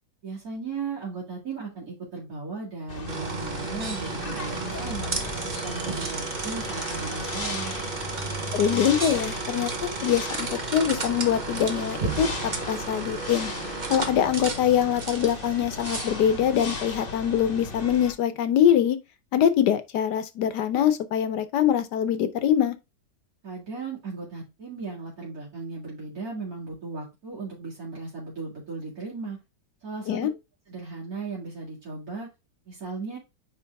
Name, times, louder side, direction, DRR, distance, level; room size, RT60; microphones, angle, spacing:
voice 1, 0.2-5.1 5.6-7.7 23.4-29.4 29.8-30.2 30.7-32.3 32.7-33.2, right 4 dB, 55° right, 2.6 m, -36 dB
sound 1, 2.9-18.1, left 3 dB, 35° left, 1.1 m, -37 dB
sound 2, 3.1-17.5, right 4 dB, 35° right, 0.8 m, -33 dB
voice 2, 8.5-12.3 12.7-13.5 13.9-19.0 19.3-22.8 30.1-30.3, left 9 dB, 75° left, 1.4 m, -23 dB
9.2 x 3.3 x 3.5 m
omnidirectional pair, 1.9 m